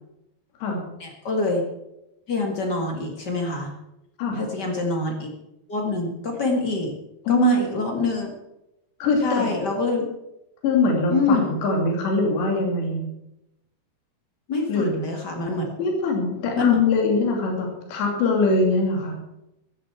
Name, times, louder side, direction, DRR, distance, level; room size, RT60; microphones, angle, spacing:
voice 1, 1.0-1.6 2.3-3.7 4.3-5.3 5.7-6.9 7.3-8.3 9.2-10.0 11.1-11.5 14.5-15.7 16.6-16.8, left 3 dB, 45° left, 2 dB, 1.3 m, -25 dB
voice 2, 7.3-7.6 9.0-9.5 10.6-13.1 14.7-15.0 15.8-19.1, left 3 dB, 70° left, 1 dB, 5.0 m, -22 dB
15.0 x 14.5 x 4.7 m, 0.88 s
omnidirectional pair, 5.2 m